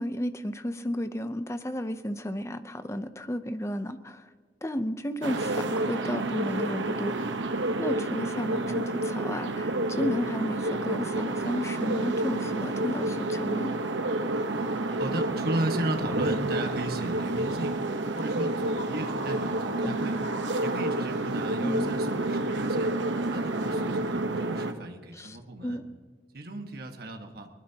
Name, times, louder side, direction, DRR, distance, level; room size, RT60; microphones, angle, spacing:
voice 1, 0.0-4.2 4.6-7.1 7.8-13.7 19.8-20.1 21.6-21.9 25.1-25.4 25.6-25.8, equal, 15° left, 10 dB, 0.7 m, -33 dB
sound 1, 5.2-24.7, right 2 dB, 90° right, 1.1 m, -29 dB
voice 2, 15.0-17.8 18.1-20.1 20.6-22.9 23.3-25.8 26.3-27.5, right 1 dB, 55° right, 4 dB, 1.6 m, -35 dB
20.0 x 20.0 x 2.9 m, 1.5 s
head